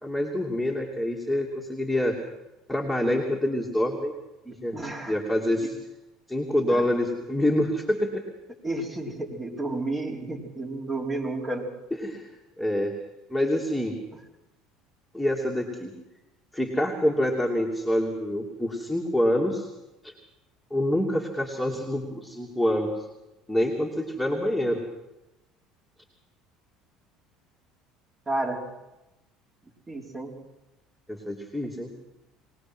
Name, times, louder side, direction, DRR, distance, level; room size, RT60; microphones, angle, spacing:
voice 1, 0.0-2.2 2.7-4.1 4.4-4.8 5.1-5.7 6.3-8.2 12.0-12.3 12.6-12.9 13.3-14.0 15.1-15.9 16.5-19.7 20.0-20.1 20.7-22.9 23.5-24.8 31.1-31.9, left 1 dB, ahead, -1 dB, 2.7 m, -26 dB
voice 2, 4.7-5.2 6.7-6.8 8.6-11.7 14.1-14.2 28.3-28.6 29.9-30.3, right 2 dB, 25° right, 0 dB, 4.4 m, -31 dB
22.0 x 19.0 x 6.3 m, 0.98 s
supercardioid pair, 85°, 0 cm